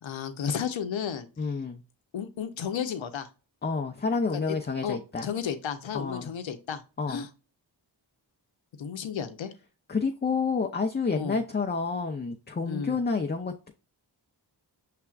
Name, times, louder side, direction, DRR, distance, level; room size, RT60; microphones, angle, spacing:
voice 1, 0.0-1.3 2.1-3.3 4.3-4.6 4.8-6.8 7.1-7.3 8.8-9.5 11.1-11.4 12.6-13.0, left 7 dB, 90° left, 0.7 m, -33 dB
voice 2, 1.4-1.8 3.6-5.3 5.9-6.3 7.0-7.3 9.9-13.7, left 4 dB, 25° left, 0.5 m, -29 dB
5.7 x 3.4 x 2.3 m
cardioid pair, 40°, 45 cm